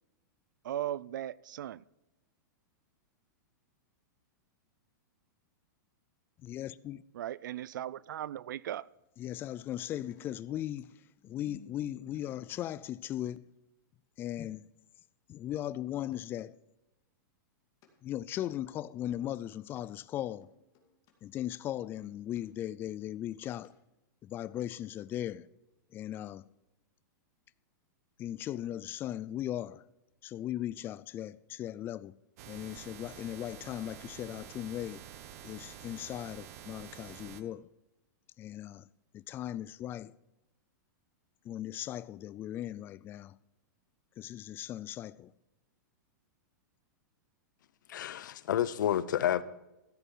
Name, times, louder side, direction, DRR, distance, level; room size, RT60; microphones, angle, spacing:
voice 1, 0.6-1.8 7.1-8.9, right 12 dB, 75° right, 0.4 m, -37 dB
voice 2, 6.4-7.0 9.2-10.9 11.2-13.4 14.2-14.7 15.3-16.6 18.0-20.5 21.2-23.7 24.2-25.5 25.9-26.4 28.2-29.8 30.2-32.1 32.5-35.0 35.4-37.7 38.4-38.9 39.1-40.1 41.4-43.4 44.2-45.3, left 12 dB, 20° left, 0.3 m, -38 dB
sound 1, 9.8-12.8 15.9-16.2 17.8-17.9 18.3-18.5 19.1-19.2 19.7-19.8 20.4-21.1 21.6-22.4 22.8-23.7 24.0-24.1, left 5 dB, 35° left, 2.5 m, -60 dB
sound 2, 32.4-37.4, right 10 dB, 55° right, 1.2 m, -49 dB
voice 3, 47.9-49.4, left 11 dB, 75° left, 0.8 m, -29 dB
14.0 x 8.1 x 5.6 m
hypercardioid pair, 150°, 10 cm